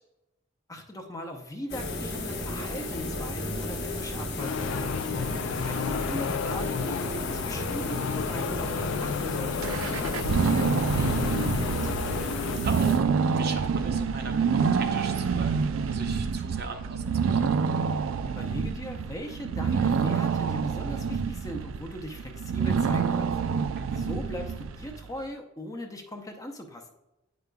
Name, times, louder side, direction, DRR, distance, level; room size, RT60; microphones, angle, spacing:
voice 1, 0.7-4.9 5.6-12.3 18.3-23.3 23.9-26.9, equal, 15° left, 4 dB, 0.6 m, -39 dB
sound 1, 1.7-13.3, left 1 dB, 55° left, 1.1 m, -34 dB
sound 2, 4.4-12.6, left 6 dB, 90° left, 0.4 m, -32 dB
voice 2, 5.5-5.8 12.6-12.9 13.3-17.5 23.8-24.2, right 3 dB, 50° right, 5 dB, 0.7 m, -39 dB
sound 3, 9.6-25.0, right 6 dB, 75° right, 0.3 m, -27 dB
9.1 x 5.1 x 2.3 m, 0.96 s
head